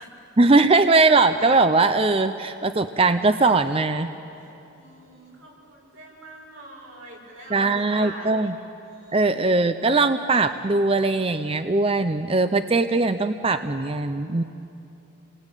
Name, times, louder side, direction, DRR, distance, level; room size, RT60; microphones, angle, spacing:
voice 1, 0.4-4.1 7.5-8.5 9.1-14.4, right 3 dB, 25° right, 10 dB, 0.5 m, -20 dB
voice 2, 4.3-8.5 8.8-9.6, right 1 dB, 85° right, -2 dB, 6.5 m, -44 dB
29.0 x 21.0 x 9.0 m, 2.9 s
head